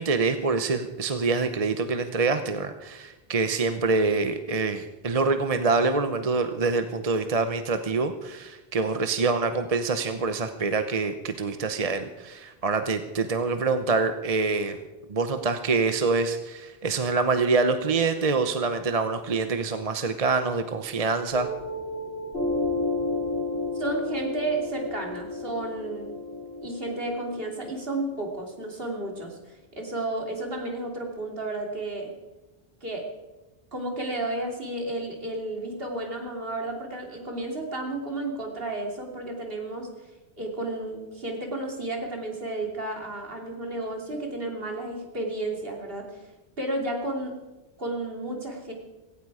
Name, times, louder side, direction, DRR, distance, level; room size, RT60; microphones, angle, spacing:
voice 1, 0.0-14.8 15.1-21.5, right 4 dB, 40° right, 8 dB, 0.9 m, -25 dB
Piano, 21.3-28.4, left 2 dB, 80° left, 5.2 m, -32 dB
voice 2, 23.7-26.1 26.6-32.1 32.8-33.1 33.7-39.9 40.4-46.3 46.6-47.3 47.8-48.7, right 2 dB, 65° right, 1 dB, 3.2 m, -32 dB
17.0 x 16.5 x 4.9 m, 1.1 s
omnidirectional pair, 1.0 m